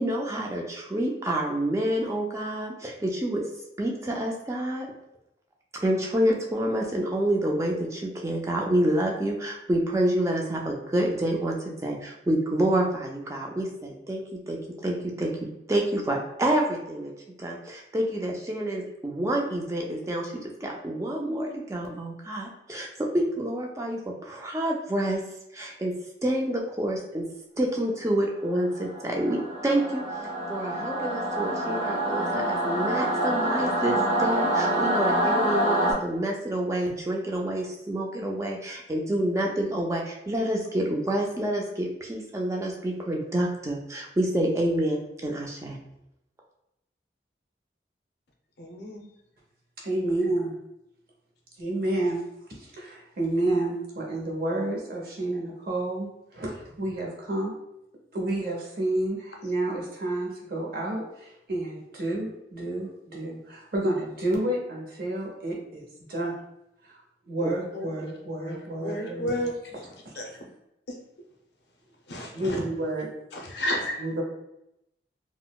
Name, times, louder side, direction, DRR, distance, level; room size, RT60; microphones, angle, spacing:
voice 1, 0.0-3.4 3.8-4.9 5.8-17.1 17.4-22.9 23.1-25.2 25.5-25.9 26.2-27.3 27.6-45.8 67.4-67.5, right 1 dB, 15° right, -1 dB, 0.3 m, -28 dB
Singing / Musical instrument, 28.7-35.9, right 1 dB, 85° right, 0.9 m, -26 dB
voice 2, 48.6-49.0 67.7-67.9 68.3-69.5 70.2-70.5 70.9-71.0 72.1-72.7 73.3-74.0, equal, 70° left, 1 dB, 0.6 m, -32 dB
voice 3, 49.8-50.5 51.6-52.2 52.5-57.5 58.1-66.3 66.8-67.0 67.3-69.3 70.0-70.1 72.3-73.1 74.0-74.2, right 1 dB, 55° right, -2 dB, 0.8 m, -30 dB
3.8 x 2.0 x 2.3 m, 0.83 s
head